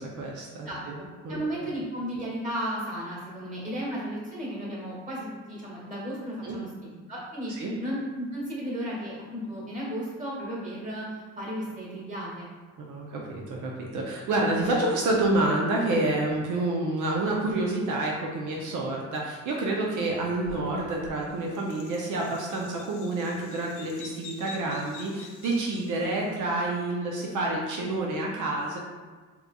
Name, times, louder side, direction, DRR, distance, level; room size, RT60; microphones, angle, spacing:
voice 1, 0.0-1.0 1.2-1.4 6.4-6.6 7.6-7.7 12.8-28.8, right 2 dB, 80° right, -2 dB, 0.6 m, -28 dB
voice 2, 0.6-7.5 7.8-12.5, equal, 25° right, -5 dB, 1.4 m, -34 dB
Bird vocalization bird call bird song, 20.0-26.3, left 5 dB, 80° left, 0.5 m, -47 dB
3.7 x 2.9 x 2.2 m, 1.4 s
cardioid pair, 90°, 30 cm